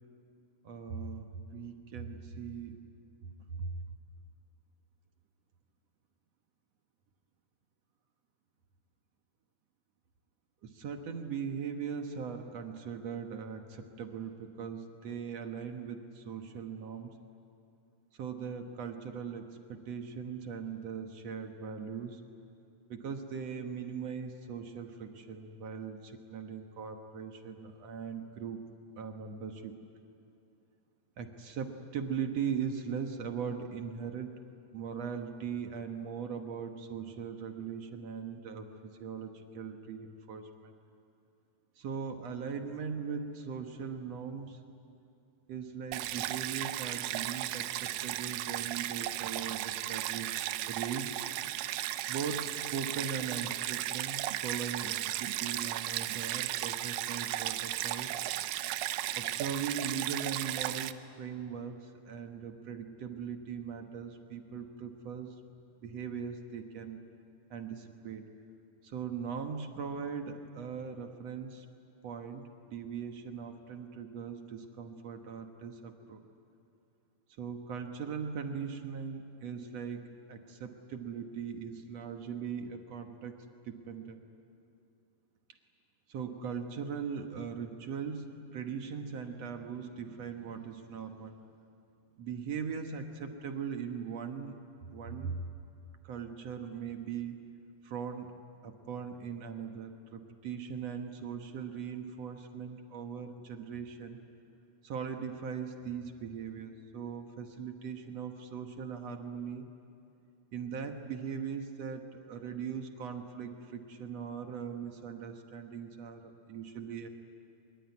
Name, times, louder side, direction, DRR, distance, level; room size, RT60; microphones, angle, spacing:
voice 1, 0.6-2.9 3.5-3.7 10.6-17.1 18.1-22.2 22.9-28.6 29.0-29.8 31.2-34.4 34.7-38.7 39.0-40.7 41.8-44.6 45.5-50.4 50.7-51.2 52.1-58.1 59.2-65.4 65.8-67.1 67.5-68.3 68.8-71.7 72.0-76.2 77.4-83.4 83.7-84.2 86.1-91.4 92.2-94.6 94.9-95.4 96.0-97.5 97.8-98.4 98.6-104.2 104.8-109.7 110.5-117.1, right 6 dB, 55° right, 5 dB, 2.1 m, -40 dB
Stream, 45.9-60.9, right 14 dB, 80° right, 2.3 m, -35 dB
24.0 x 22.5 x 9.7 m, 2.7 s
omnidirectional pair, 4.1 m